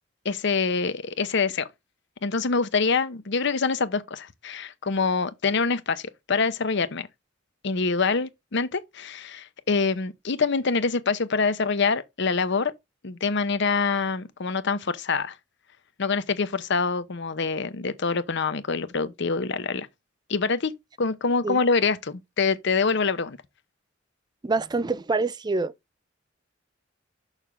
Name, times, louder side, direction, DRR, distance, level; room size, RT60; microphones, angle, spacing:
voice 1, 0.2-1.7 2.2-7.1 7.6-12.7 13.0-15.3 16.0-19.9 20.3-20.7 21.0-23.4, left 4 dB, 60° left, 0.8 m, -25 dB
voice 2, 24.4-25.7, right 3 dB, 20° right, 0.4 m, -26 dB
6.6 x 3.5 x 6.0 m
head